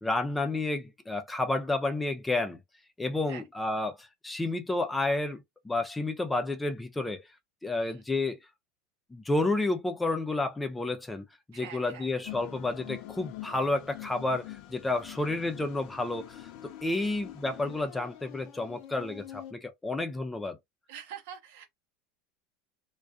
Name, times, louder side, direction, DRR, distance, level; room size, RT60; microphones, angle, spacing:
voice 1, 0.0-2.6 3.0-5.4 5.6-7.2 7.6-8.4 9.1-16.5 16.8-20.6, left 2 dB, 10° left, 0.5 m, -30 dB
voice 2, 11.5-12.1 15.1-15.3 17.0-17.1 20.9-21.6, right 8 dB, 70° right, 0.9 m, -46 dB
sound 1, 12.2-19.5, left 13 dB, 60° left, 0.4 m, -45 dB
2.3 x 2.3 x 2.3 m
hypercardioid pair, 90°, 0 cm